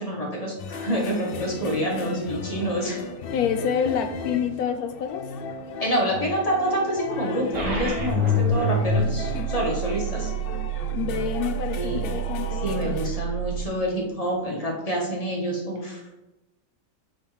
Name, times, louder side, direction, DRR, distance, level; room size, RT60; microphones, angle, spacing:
voice 1, 0.0-3.0 5.8-10.3 11.7-12.0 12.6-16.0, right 1 dB, 25° left, -2 dB, 1.4 m, -27 dB
sound 1, 0.6-13.1, left 4 dB, 65° left, 0.5 m, -36 dB
voice 2, 3.3-5.2 9.3-9.5 10.9-13.2, left 8 dB, 85° left, 6 dB, 1.2 m, -28 dB
sound 2, 7.5-13.6, right 1 dB, 80° right, 1.9 m, -27 dB
7.3 x 5.2 x 3.3 m, 0.98 s
omnidirectional pair, 1.6 m